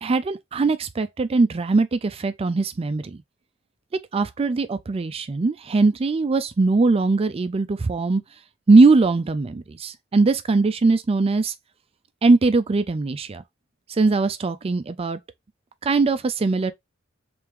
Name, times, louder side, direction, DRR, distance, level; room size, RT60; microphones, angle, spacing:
voice 1, 0.0-3.2 4.1-8.2 8.7-11.5 12.2-13.4 13.9-15.2 15.8-16.7, right 3 dB, 30° right, 0.4 m, -20 dB
3.6 x 3.3 x 3.0 m
head